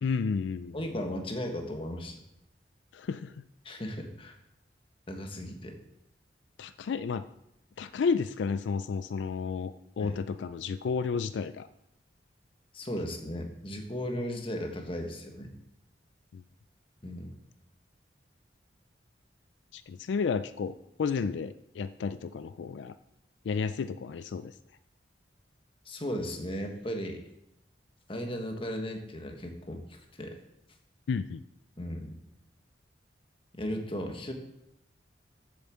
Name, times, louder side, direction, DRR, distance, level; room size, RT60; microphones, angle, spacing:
voice 1, 0.0-0.8 2.9-3.4 6.6-7.3 7.8-11.7 16.3-16.4 19.7-20.7 21.0-22.9 23.4-24.5 31.1-31.4, left 5 dB, 80° left, 13 dB, 0.4 m, -32 dB
voice 2, 0.7-2.2 3.6-4.3 5.1-5.8 10.0-10.2 12.7-15.5 17.0-17.3 25.8-27.2 28.1-30.4 31.8-32.2 33.5-34.3, equal, 30° left, 4 dB, 1.4 m, -36 dB
7.8 x 7.1 x 7.3 m, 0.84 s
head